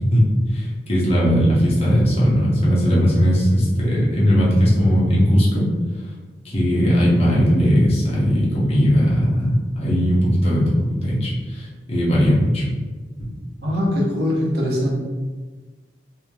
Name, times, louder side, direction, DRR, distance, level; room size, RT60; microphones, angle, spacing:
voice 1, 0.1-5.7 6.4-12.7 13.2-13.3, equal, 35° left, -6 dB, 0.8 m, -18 dB
voice 2, 13.6-15.0, left 1 dB, 65° right, -4 dB, 0.8 m, -21 dB
3.2 x 2.8 x 2.2 m, 1.3 s
head